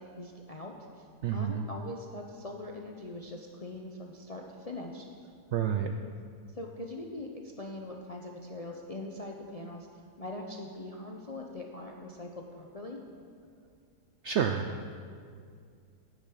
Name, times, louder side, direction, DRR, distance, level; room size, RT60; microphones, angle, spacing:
voice 1, 0.0-5.1 6.0-6.1 6.5-13.0, left 2 dB, 45° left, 1 dB, 0.5 m, -42 dB
voice 2, 1.2-1.6 5.5-5.9 14.2-14.8, right 8 dB, 75° right, 6 dB, 0.6 m, -29 dB
10.5 x 9.8 x 5.7 m, 2.2 s
omnidirectional pair, 1.7 m